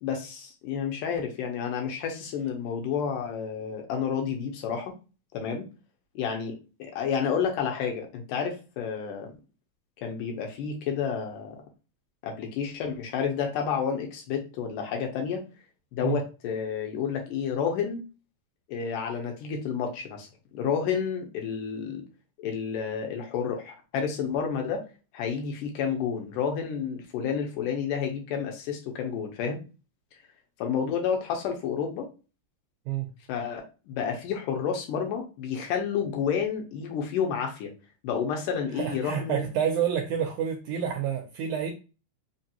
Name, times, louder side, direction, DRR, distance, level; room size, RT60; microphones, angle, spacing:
voice 1, 0.0-4.9 5.3-5.7 6.2-9.3 10.0-11.6 12.2-15.4 15.9-18.0 18.7-20.3 20.5-22.0 22.4-24.8 25.1-29.6 30.6-32.1 33.3-37.7 38.0-39.4, left 7 dB, 75° left, 2 dB, 2.3 m, -30 dB
voice 2, 38.7-41.7, right 8 dB, 80° right, 3 dB, 1.8 m, -28 dB
5.3 x 2.5 x 2.8 m, 0.32 s
omnidirectional pair, 4.0 m